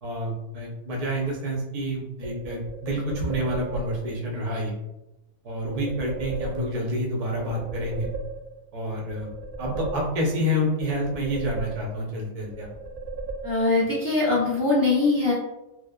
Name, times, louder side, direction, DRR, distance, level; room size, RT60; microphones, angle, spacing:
voice 1, 0.0-4.7 5.4-8.1 8.7-9.3 9.6-12.7, equal, 40° right, -3 dB, 0.5 m, -28 dB
sound 1, 2.2-4.2 5.7-7.0 7.4-8.7 9.1-10.4 10.8-12.2 12.5-13.9, right 3 dB, 80° right, 1.1 m, -36 dB
voice 2, 13.4-15.3, left 3 dB, 15° left, -7 dB, 0.5 m, -22 dB
3.1 x 2.0 x 2.3 m, 0.95 s
omnidirectional pair, 1.5 m